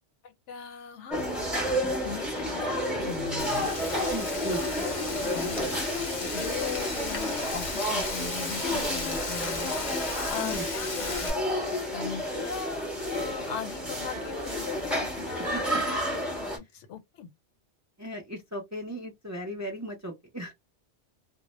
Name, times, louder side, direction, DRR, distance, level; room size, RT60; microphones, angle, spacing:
voice 1, 0.2-1.3 1.9-3.7 4.5-4.6 4.8-4.9 5.2-5.9 6.3-9.7 10.3-10.9 11.7-15.6 16.4-17.3, left 7 dB, 85° left, 1.0 m, -39 dB
sound 1, 1.1-16.6, equal, ahead, 0.8 m, -31 dB
Frying (food), 3.4-11.3, left 3 dB, 40° left, 0.6 m, -36 dB
voice 2, 4.1-4.7 10.4-10.7 15.4-15.6 18.0-20.5, right 1 dB, 25° right, 0.4 m, -36 dB
2.1 x 2.0 x 3.0 m
omnidirectional pair, 1.2 m